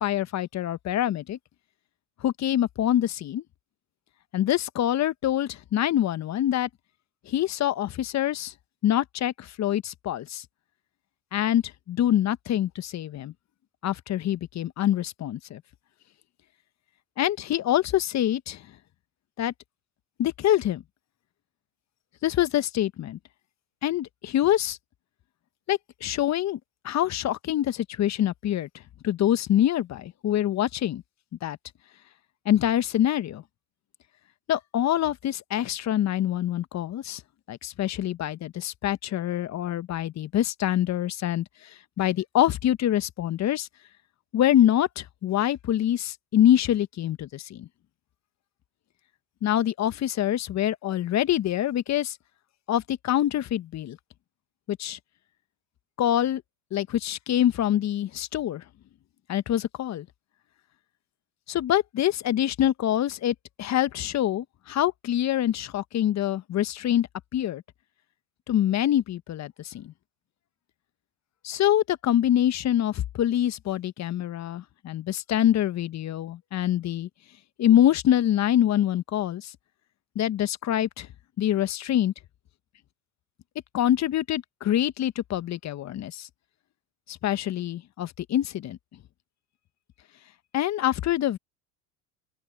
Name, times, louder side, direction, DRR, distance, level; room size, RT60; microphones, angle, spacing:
voice 1, 0.0-1.4 2.2-3.4 4.3-6.7 7.3-8.5 8.8-10.4 11.3-13.3 13.8-15.6 17.2-18.6 19.4-19.5 20.2-20.8 22.2-23.2 23.8-24.8 25.7-26.6 26.8-28.7 29.0-31.0 31.4-31.6 32.4-33.4 34.5-37.2 37.5-43.7 44.3-47.7 49.4-52.2 52.7-54.0 54.7-55.0 56.0-56.4 56.7-58.6 59.3-60.1 61.5-67.6 68.5-69.9 71.4-77.1 77.6-79.5 80.1-81.1 81.4-82.1 83.7-86.3 87.1-88.8 90.5-91.4, left 11 dB, 45° left, 1.3 m, -25 dB
open air
hypercardioid pair, 80°, 39 cm